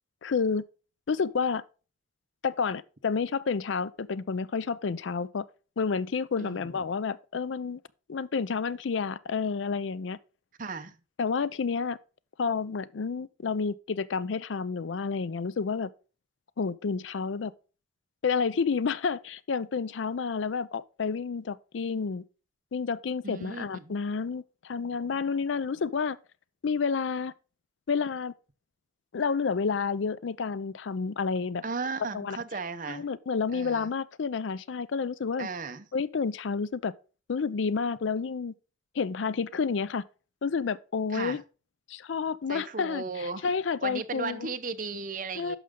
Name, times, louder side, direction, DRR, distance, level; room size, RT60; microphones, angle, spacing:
voice 1, 0.2-0.6 1.1-1.6 2.4-5.5 5.8-7.8 8.1-10.2 11.2-12.0 12.4-15.9 16.6-17.5 18.2-22.2 22.7-26.2 26.6-27.3 27.9-28.3 29.1-31.6 32.1-32.4 32.9-35.5 35.9-36.9 37.3-38.5 38.9-40.0 40.4-41.4 41.9-44.5 45.4-45.6, left 5 dB, 75° left, 0.5 m, -30 dB
voice 2, 6.4-6.7 10.6-11.0 23.2-23.9 31.6-33.0 33.5-33.9 35.4-35.8 41.1-41.4 42.5-43.4 43.8-45.6, right 4 dB, 45° right, 0.8 m, -36 dB
11.0 x 6.5 x 3.7 m
head